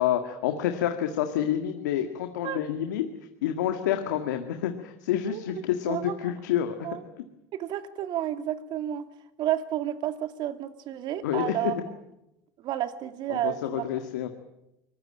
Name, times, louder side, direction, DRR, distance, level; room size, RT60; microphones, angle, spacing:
voice 1, 0.0-3.1 3.4-6.8 11.2-11.7 13.3-14.3, left 11 dB, 85° left, 6 dB, 1.9 m, -28 dB
voice 2, 5.2-5.6 5.9-6.3 6.8-7.0 7.5-9.1 9.4-11.8 12.6-13.8, right 12 dB, 55° right, 9 dB, 2.5 m, -31 dB
23.5 x 20.5 x 8.8 m, 0.88 s
supercardioid pair, 95°, 9 cm